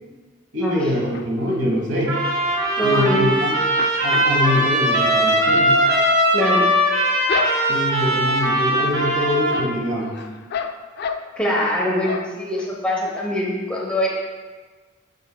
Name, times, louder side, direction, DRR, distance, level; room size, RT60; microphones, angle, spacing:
voice 1, 0.5-2.2 2.8-3.6 4.0-5.8 7.7-10.2, left 1 dB, 60° right, -1 dB, 1.3 m, -24 dB
sound 1, 0.8-1.6 2.0-3.3 3.6-8.0 8.4-8.9 9.2-11.7 12.0-12.7 13.1-13.2 13.5-13.6, left 6 dB, 50° left, 0.3 m, -33 dB
Trumpet, 2.1-9.7, equal, 85° right, 1.6 m, -20 dB
voice 2, 2.8-3.4 6.3-6.7 11.4-14.1, equal, 5° left, -4 dB, 0.8 m, -22 dB
7.1 x 6.7 x 2.2 m, 1.4 s
head